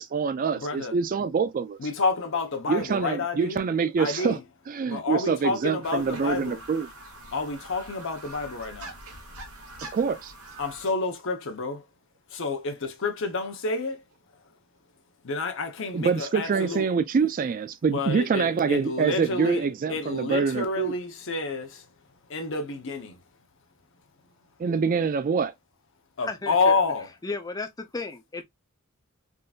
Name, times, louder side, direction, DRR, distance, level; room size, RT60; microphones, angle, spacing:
voice 1, 0.0-1.8 2.7-4.4 4.7-6.9 9.9-10.3 15.9-20.9 24.6-25.5, right 5 dB, 40° right, 0.3 m, -25 dB
voice 2, 0.5-1.0 1.8-3.6 4.0-4.4 4.9-6.6 7.3-8.9 10.6-11.8 12.3-14.0 15.2-16.9 17.9-21.9 22.3-23.2 26.2-27.1, left 3 dB, 65° left, 0.8 m, -29 dB
sound 1, 5.8-10.9, right 2 dB, 85° right, 1.3 m, -44 dB
voice 3, 26.2-26.8 27.2-28.4, left 3 dB, 20° left, 0.5 m, -34 dB
3.7 x 2.6 x 2.4 m
head